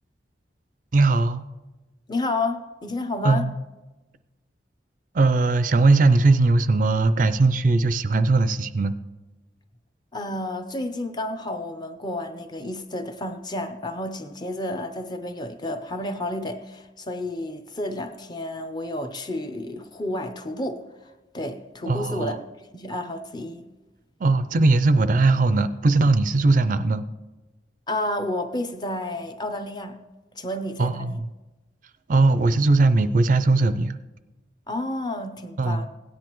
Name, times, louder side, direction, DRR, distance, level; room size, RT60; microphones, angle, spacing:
voice 1, 0.9-1.4 3.2-3.5 5.1-8.9 21.9-22.4 24.2-27.0 30.8-31.2 32.1-34.0 35.6-35.8, right 3 dB, 45° right, 0.4 m, -19 dB
voice 2, 2.1-3.5 10.1-20.8 21.3-22.4 22.7-23.7 27.9-30.0 30.4-31.2 34.7-35.9, left 1 dB, 25° left, 0.6 m, -30 dB
17.0 x 9.9 x 3.0 m
head